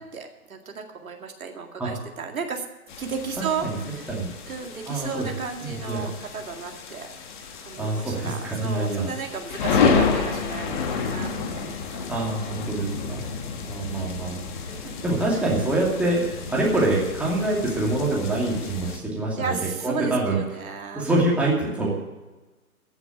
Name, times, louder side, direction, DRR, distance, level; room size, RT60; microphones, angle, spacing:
voice 1, 0.0-2.6 3.0-4.1 4.5-7.1 7.6-11.7 11.9-12.0 12.9-13.2 14.7-15.0 19.4-21.1, right 5 dB, 70° right, 3 dB, 2.2 m, -34 dB
sound 1, 2.9-19.0, left 5 dB, 35° left, 1.6 m, -30 dB
voice 2, 4.9-5.3 5.6-6.1 7.8-9.2 9.7-10.0 12.1-13.3 13.7-16.2 16.5-19.6 19.8-20.4 20.9-22.0, right 2 dB, 5° right, -5 dB, 2.5 m, -25 dB
14.5 x 7.2 x 8.7 m, 1.2 s
figure-of-eight pair, 140°, 44 cm